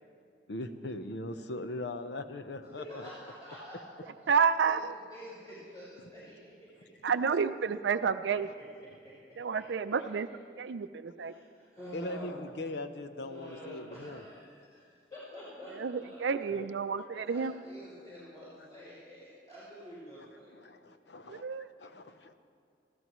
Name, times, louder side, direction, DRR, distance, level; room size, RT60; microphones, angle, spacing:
voice 1, 0.5-3.1 11.9-14.2 16.5-16.7 20.5-21.4 21.8-22.3, left 2 dB, 70° left, 9 dB, 0.8 m, -40 dB
voice 2, 2.8-6.9 8.8-9.1 9.5-10.4 11.2-12.4 13.2-16.4 17.2-20.5, equal, 20° left, -12 dB, 4.9 m, -48 dB
voice 3, 4.3-4.9 7.0-8.5 9.4-10.3 10.6-11.3 15.8-17.5 21.3-21.7, right 6 dB, 85° right, 11 dB, 0.5 m, -30 dB
24.5 x 14.0 x 3.1 m, 2.3 s
head